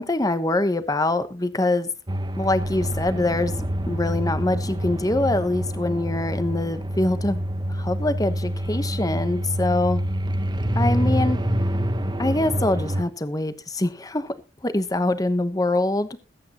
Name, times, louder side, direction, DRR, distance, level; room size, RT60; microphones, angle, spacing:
voice 1, 0.0-1.9 2.4-7.4 7.7-10.0 10.7-11.4 12.2-14.3 14.6-16.1, left 2 dB, 20° left, 12 dB, 1.0 m, -24 dB
sound 1, 2.1-13.0, equal, 25° right, 1.2 m, -26 dB
21.0 x 8.7 x 3.0 m, 0.30 s
head